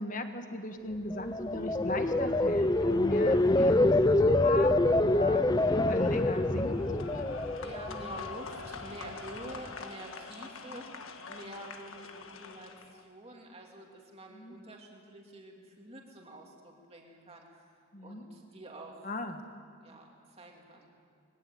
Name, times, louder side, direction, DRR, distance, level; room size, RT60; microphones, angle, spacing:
voice 1, 0.0-4.0 4.2-6.8 7.1-7.5 10.7-11.0 14.3-14.6 17.9-18.3 19.0-19.4, left 2 dB, 40° left, 7 dB, 1.4 m, -37 dB
sound 1, 1.1-8.3 8.7-9.0, left 2 dB, 20° left, 0.5 m, -26 dB
sound 2, 5.6-13.0, left 4 dB, 75° left, 1.6 m, -45 dB
voice 2, 7.6-10.9 11.2-19.1 19.8-20.9, right 1 dB, 30° right, 0 dB, 2.7 m, -48 dB
22.5 x 16.5 x 9.2 m, 2.2 s
head